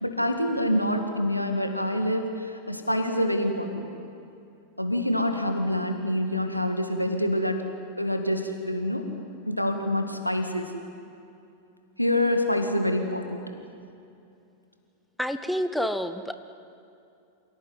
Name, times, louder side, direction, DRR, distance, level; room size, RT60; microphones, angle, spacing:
voice 1, 0.0-3.9 4.8-7.6 8.0-9.1 9.5-10.7 12.0-13.4, left 1 dB, 90° left, 5 dB, 2.3 m, -26 dB
voice 2, 15.2-16.3, equal, ahead, 10 dB, 1.0 m, -28 dB
27.5 x 17.5 x 9.6 m, 2.6 s
figure-of-eight pair, 90°, 0 cm